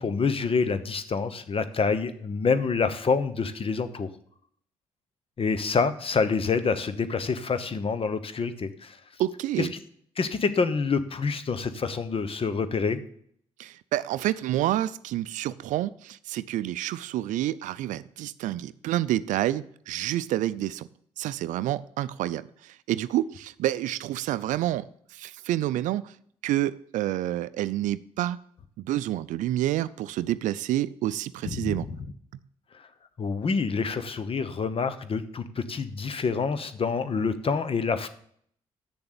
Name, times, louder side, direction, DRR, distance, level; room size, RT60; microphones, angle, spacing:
voice 1, 0.0-4.1 5.4-9.0 9.6-9.7 10.2-13.0 31.4-32.0 33.2-38.1, left 5 dB, 45° left, 12 dB, 1.0 m, -27 dB
voice 2, 9.2-9.7 13.6-20.9 21.2-26.1 26.4-28.4 28.8-31.9, right 13 dB, 70° right, 16 dB, 0.4 m, -28 dB
8.0 x 6.9 x 6.8 m, 0.64 s
hypercardioid pair, 50°, 13 cm